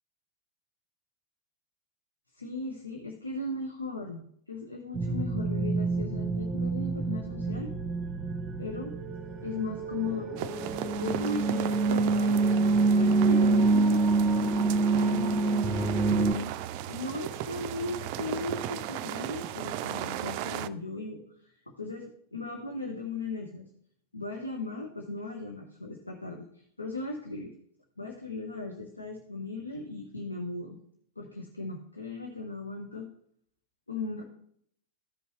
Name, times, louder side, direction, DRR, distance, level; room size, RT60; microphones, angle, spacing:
voice 1, 2.3-7.7 8.6-9.0 9.4-12.4 13.0-14.0 14.4-16.5 16.9-21.2 21.8-23.7 24.1-27.5 28.0-30.8 31.2-33.1 33.9-34.2, left 3 dB, 80° left, 2 dB, 0.9 m, -37 dB
sound 1, 4.9-16.3, right 3 dB, 20° right, 0.9 m, -26 dB
sound 2, 10.4-20.7, right 12 dB, 45° right, 0.3 m, -36 dB
14.0 x 5.4 x 3.1 m, 0.68 s
figure-of-eight pair, 90°, 0 cm